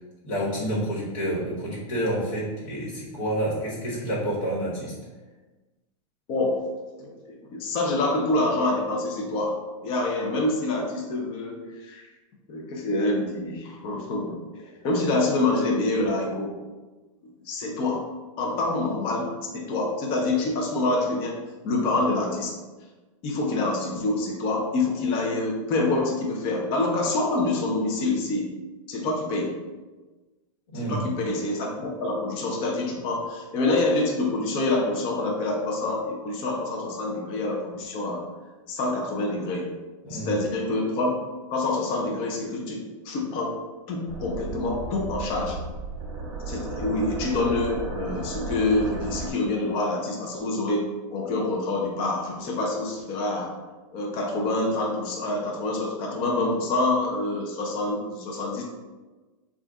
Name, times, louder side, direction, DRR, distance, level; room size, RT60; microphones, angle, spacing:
voice 1, 0.2-4.9 30.7-31.1 40.0-40.4, right 1 dB, 65° left, -6 dB, 1.3 m, -29 dB
voice 2, 6.3-6.6 7.0-12.1 12.5-16.5 17.4-18.1 18.4-22.5 23.2-28.5 28.9-29.5 30.7-38.2 38.7-39.7 40.1-41.1 41.5-43.6 43.9-45.6 46.5-50.8 51.1-53.5 53.9-58.6, left 2 dB, 30° left, 0 dB, 0.6 m, -26 dB
sound 1, 44.1-49.3, right 3 dB, 40° right, 0.9 m, -34 dB
3.9 x 2.4 x 3.5 m, 1.2 s
supercardioid pair, 160°, 18 cm